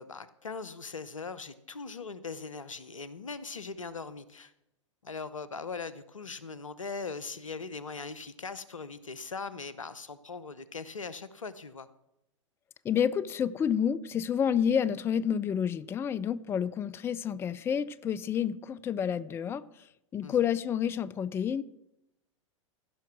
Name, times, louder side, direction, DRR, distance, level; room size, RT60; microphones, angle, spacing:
voice 1, 0.0-4.5 5.0-11.9 20.2-20.5, left 4 dB, 85° left, 15 dB, 0.7 m, -40 dB
voice 2, 12.8-19.6 20.1-21.6, left 8 dB, 15° left, 15 dB, 0.4 m, -29 dB
15.5 x 5.7 x 6.1 m, 0.84 s
figure-of-eight pair, 95°, 16 cm